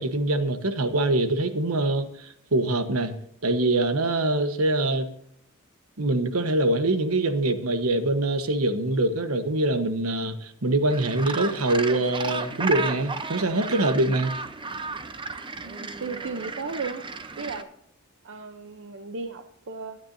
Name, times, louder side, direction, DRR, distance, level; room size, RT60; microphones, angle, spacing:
voice 1, 0.0-3.1 3.4-5.1 6.0-14.4, right 2 dB, 80° right, 9 dB, 1.2 m, -24 dB
Gull seagull, 10.9-17.6, right 4 dB, 25° right, 0.7 m, -34 dB
voice 2, 15.6-17.1 17.4-17.7 18.2-20.0, right 4 dB, 60° right, 7 dB, 0.7 m, -35 dB
23.0 x 9.6 x 2.7 m, 0.71 s
head